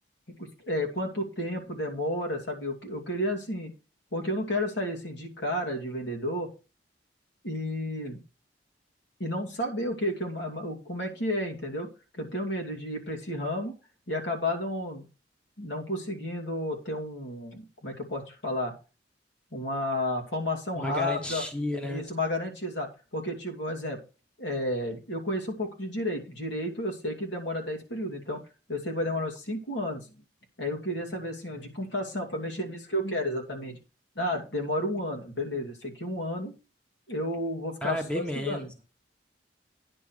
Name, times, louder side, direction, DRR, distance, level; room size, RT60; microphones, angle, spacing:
voice 1, 0.4-3.7 4.1-6.5 7.4-8.2 9.2-11.9 12.2-13.7 14.1-15.0 15.6-18.7 19.5-21.4 21.8-22.9 23.1-24.0 24.4-28.4 28.7-30.0 30.6-33.8 34.2-36.5 37.1-38.7, left 1 dB, 75° left, 3 dB, 2.7 m, -32 dB
voice 2, 20.7-22.0 37.8-38.8, left 1 dB, 5° left, 4 dB, 1.1 m, -32 dB
9.8 x 4.4 x 6.5 m, 0.31 s
head